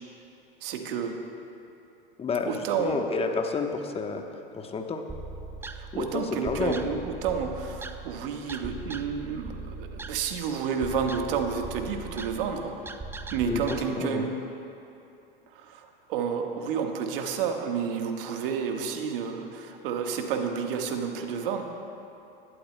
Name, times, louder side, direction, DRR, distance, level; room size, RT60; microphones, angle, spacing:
voice 1, 0.6-1.2 2.5-3.0 5.7-12.7 13.3-14.3 15.5-21.6, right 6 dB, 65° right, 4 dB, 1.5 m, -30 dB
voice 2, 2.2-4.2 4.5-5.1 5.9-6.8 13.4-14.2, left 4 dB, 20° left, 4 dB, 1.0 m, -30 dB
sound 1, 5.1-13.8, right 3 dB, 10° right, 0.4 m, -40 dB
20.0 x 12.5 x 2.2 m, 2.8 s
hypercardioid pair, 95°, 30 cm